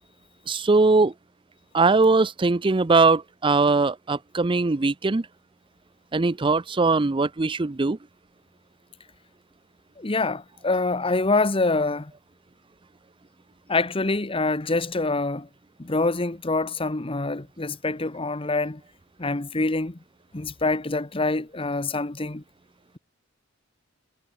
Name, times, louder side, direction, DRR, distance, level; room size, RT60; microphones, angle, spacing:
voice 1, 0.5-1.1 1.7-5.2 6.1-8.0, right 3 dB, 25° right, 0.5 m, -20 dB
voice 2, 10.0-12.1 13.7-15.5 15.8-18.8 19.2-20.0 20.3-22.4, left 3 dB, 25° left, 1.1 m, -25 dB
head